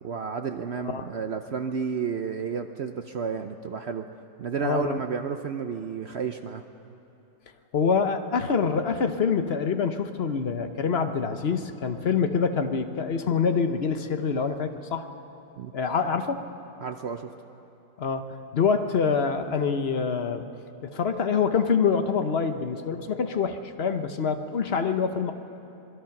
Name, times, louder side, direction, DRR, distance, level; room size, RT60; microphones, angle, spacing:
voice 1, 0.0-4.1 4.4-6.6 15.6-15.7 16.8-17.3, right 6 dB, 85° right, 7 dB, 0.5 m, -31 dB
voice 2, 4.6-5.0 7.7-15.1 15.7-16.4 18.0-20.5 20.8-25.3, left 5 dB, 45° left, 8 dB, 0.8 m, -26 dB
26.0 x 21.0 x 5.9 m, 2.9 s
omnidirectional pair, 2.0 m